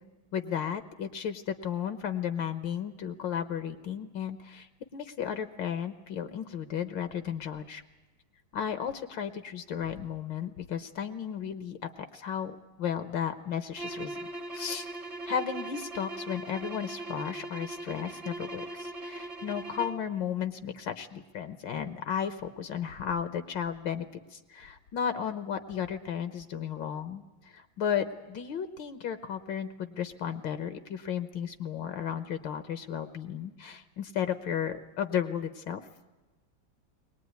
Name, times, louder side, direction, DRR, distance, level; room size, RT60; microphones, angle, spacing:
voice 1, 0.3-7.8 8.5-14.3 14.5-14.9 15.3-24.0 24.3-35.8, left 8 dB, 75° left, 10 dB, 1.7 m, -34 dB
sound 1, 13.7-20.1, right 2 dB, 25° right, 0.8 m, -40 dB
21.5 x 19.0 x 9.4 m, 1.1 s
omnidirectional pair, 2.1 m